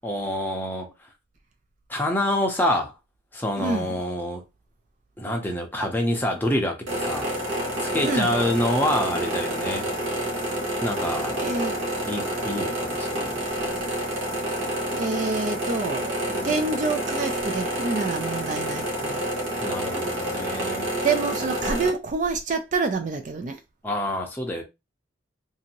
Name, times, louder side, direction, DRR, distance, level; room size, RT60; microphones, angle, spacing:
voice 1, 0.0-0.9 1.9-2.9 3.3-4.4 5.2-7.3 7.8-9.9 10.8-11.5 12.1-13.5 16.3-16.5 19.6-20.9 23.8-24.6, left 1 dB, 10° left, 0.6 m, -27 dB
voice 2, 3.6-4.0 8.0-8.4 11.4-11.7 14.9-19.3 21.0-23.6, right 4 dB, 40° right, 0.3 m, -27 dB
sound 1, 6.9-21.9, right 1 dB, 80° right, 1.0 m, -28 dB
2.7 x 2.5 x 2.9 m
head